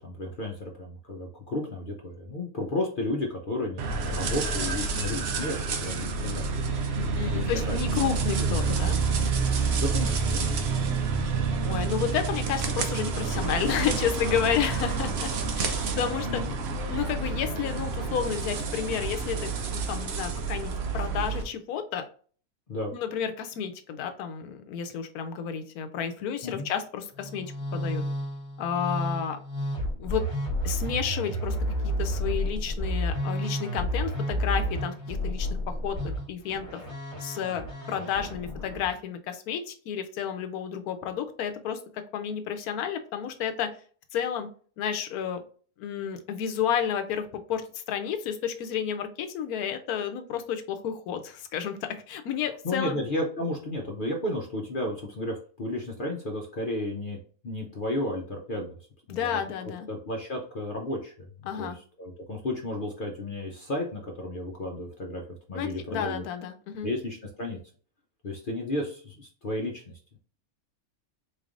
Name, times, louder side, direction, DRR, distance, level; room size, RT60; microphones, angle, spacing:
voice 1, 0.0-6.5 7.0-7.8 9.7-10.5 16.3-16.5 22.7-22.9 26.4-26.7 52.6-57.2 57.4-58.8 59.1-59.4 59.9-61.3 61.6-65.2 65.5-66.2 66.8-67.6 68.2-69.8, left 1 dB, 50° left, 0 dB, 0.6 m, -33 dB
raschelnde Blumen, 3.8-21.4, right 4 dB, 60° right, 0.7 m, -28 dB
voice 2, 7.1-9.0 11.6-16.4 16.9-22.0 22.9-28.0 28.6-29.4 30.0-30.3 30.6-31.6 31.8-36.0 36.3-36.8 37.2-43.7 44.1-44.5 44.8-45.4 45.8-53.0 59.1-59.9 61.5-61.8 65.5-66.9, left 8 dB, 80° left, 7 dB, 1.1 m, -31 dB
Musical instrument, 27.1-38.9, equal, 25° left, 1.2 m, -31 dB
4.2 x 3.3 x 2.5 m, 0.43 s
omnidirectional pair, 1.6 m